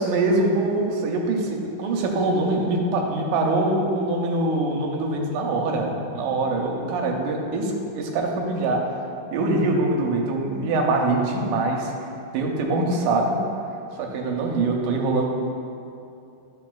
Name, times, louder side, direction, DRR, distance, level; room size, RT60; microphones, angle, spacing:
voice 1, 0.0-8.9 9.3-11.9 12.3-13.4 14.0-15.3, right 2 dB, 80° right, 0 dB, 2.0 m, -23 dB
11.0 x 4.5 x 2.3 m, 2.7 s
omnidirectional pair, 3.8 m